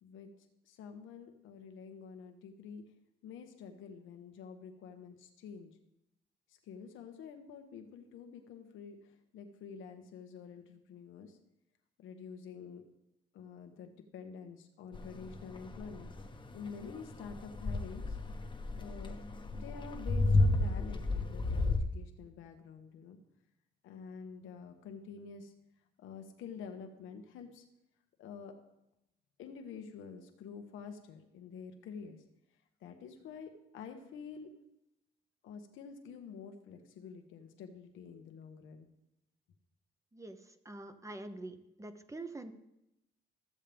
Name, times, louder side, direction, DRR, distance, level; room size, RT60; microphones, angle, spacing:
voice 1, 0.7-2.8 3.2-5.7 6.7-9.0 9.3-11.4 12.0-12.8 13.3-16.1 16.5-18.2 18.8-19.1 19.5-23.2 23.8-25.5 26.0-27.6 28.2-28.5 29.4-32.2 32.8-34.5 35.4-38.9, left 6 dB, 85° left, 5 dB, 1.1 m, -48 dB
sound 1, 14.9-21.8, left 2 dB, 25° left, 1.0 m, -32 dB
voice 2, 40.6-42.5, right 2 dB, 15° right, 9 dB, 0.9 m, -45 dB
14.0 x 7.5 x 3.5 m, 0.87 s
cardioid pair, 90°, 20 cm